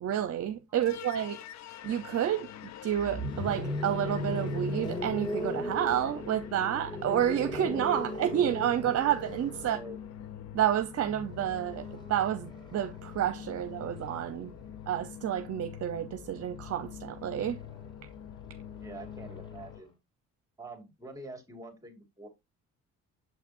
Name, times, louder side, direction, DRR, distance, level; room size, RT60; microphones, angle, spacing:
voice 1, 0.0-1.4 1.8-2.5 2.8-9.8 10.5-14.5 14.9-17.6, right 10 dB, 55° right, 0.8 m, -30 dB
sound 1, 0.8-19.8, left 11 dB, 65° left, 0.7 m, -45 dB
sound 2, 2.9-14.9 16.1-19.7, left 1 dB, 15° left, 2.6 m, -39 dB
voice 2, 9.6-10.0 18.8-19.9 20.6-22.3, right 2 dB, 10° right, 2.6 m, -46 dB
7.4 x 5.8 x 2.6 m
cardioid pair, 90°, 30 cm